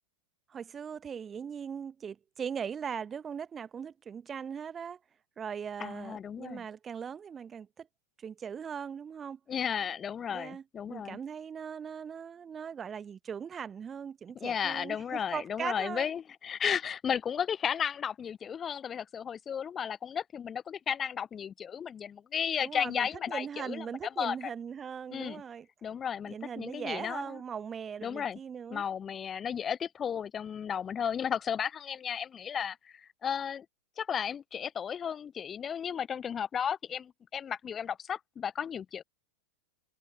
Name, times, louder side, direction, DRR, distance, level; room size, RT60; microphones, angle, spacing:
voice 1, 0.5-5.0 5.4-7.9 8.2-9.4 10.3-10.6 10.9-16.1 22.6-25.7 26.2-28.8, right 7 dB, 20° right, 1.3 m, -39 dB
voice 2, 5.8-6.6 9.5-11.2 14.3-24.4 25.1-25.4 25.8-27.4 28.0-28.4 28.7-32.8 33.2-33.7 34.0-39.0, left 8 dB, 20° left, 0.7 m, -34 dB
figure-of-eight pair, 90°, 0 cm